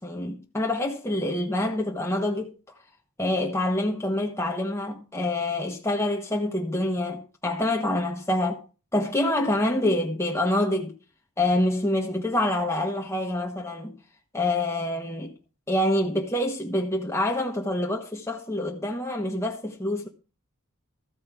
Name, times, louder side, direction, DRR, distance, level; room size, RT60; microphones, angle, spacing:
voice 1, 0.0-2.5 3.2-8.6 8.9-10.9 11.4-14.0 14.3-15.4 15.7-20.1, left 1 dB, 10° left, 1.3 m, -26 dB
14.0 x 5.3 x 7.1 m
head